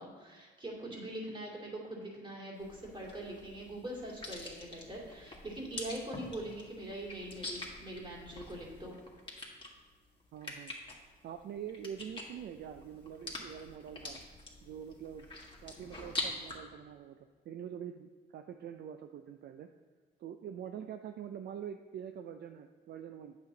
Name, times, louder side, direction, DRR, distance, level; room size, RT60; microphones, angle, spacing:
voice 1, 0.0-9.0, right 1 dB, 25° right, -3 dB, 2.6 m, -43 dB
sound 1, 2.6-16.6, left 2 dB, 25° left, 1.8 m, -45 dB
voice 2, 10.3-10.7 11.2-14.2 14.6-15.3 15.6-17.2 17.5-19.7 20.2-23.4, right 8 dB, 60° right, 7 dB, 0.4 m, -45 dB
8.2 x 6.9 x 3.9 m, 1.5 s
cardioid pair, 90°, 20 cm